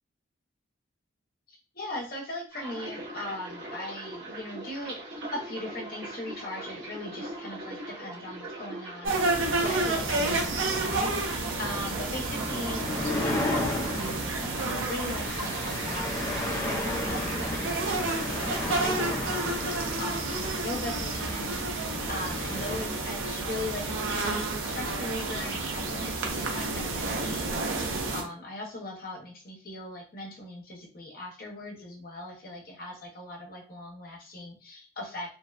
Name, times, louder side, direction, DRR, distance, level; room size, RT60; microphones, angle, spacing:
voice 1, 1.5-5.0 5.3-35.3, left 1 dB, 45° left, -1 dB, 0.7 m, -39 dB
sound 1, 2.5-18.5 18.8-19.7 19.9-20.3, right 2 dB, 75° right, 0.9 m, -41 dB
sound 2, 9.0-28.2, right 3 dB, 90° right, 0.6 m, -31 dB
sound 3, 9.4-22.9, left 1 dB, 15° left, 0.3 m, -35 dB
2.6 x 2.1 x 2.3 m, 0.41 s
head